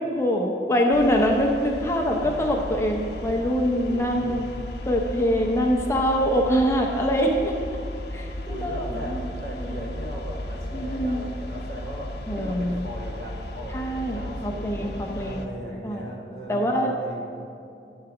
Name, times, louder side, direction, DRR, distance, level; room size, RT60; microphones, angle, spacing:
voice 1, 0.1-4.5 4.9-7.5 8.1-9.3 9.6-9.9 10.7-11.3 12.3-12.8 13.7-15.5 15.8-16.0 16.5-16.9, equal, 15° left, 0 dB, 0.6 m, -24 dB
sound 1, 0.9-15.5, left 1 dB, 70° left, 0.8 m, -35 dB
voice 2, 2.0-2.6 3.8-4.6 8.5-17.2, equal, 65° right, -3 dB, 1.6 m, -38 dB
11.0 x 4.0 x 5.9 m, 2.6 s
head